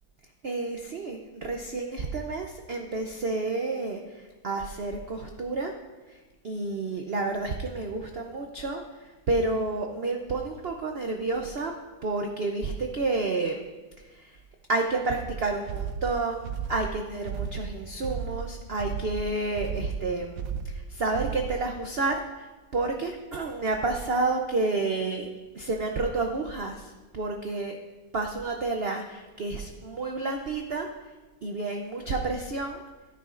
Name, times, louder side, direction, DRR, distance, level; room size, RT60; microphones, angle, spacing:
voice 1, 0.4-5.7 6.1-6.2 6.4-11.7 12.0-13.6 14.0-14.4 14.7-25.3 25.5-27.8 28.1-30.9 31.4-32.8, right 3 dB, 90° right, 3 dB, 0.5 m, -30 dB
sound 1, 15.7-21.7, right 7 dB, 70° right, 0.8 m, -34 dB
14.5 x 9.5 x 2.5 m, 1.2 s
omnidirectional pair, 2.0 m